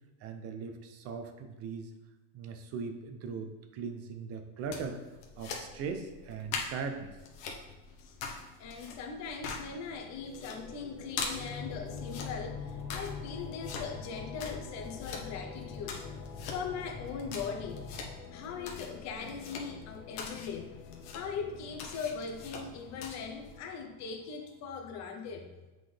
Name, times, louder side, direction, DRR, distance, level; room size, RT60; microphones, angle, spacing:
voice 1, 0.2-1.9 2.3-5.0 5.4-7.2, right 5 dB, 35° right, 7 dB, 0.6 m, -39 dB
sound 1, 4.6-23.6, left 4 dB, 60° left, 1.1 m, -44 dB
voice 2, 8.6-16.0 16.5-17.9 18.3-20.7 21.1-25.5, left 5 dB, 35° left, 3 dB, 0.9 m, -40 dB
sound 2, 9.4-24.7, left 6 dB, 90° left, 0.8 m, -50 dB
sound 3, 11.3-18.1, left 5 dB, 10° right, 1.5 m, -44 dB
7.5 x 3.9 x 3.3 m, 1.1 s
supercardioid pair, 155°, 45 cm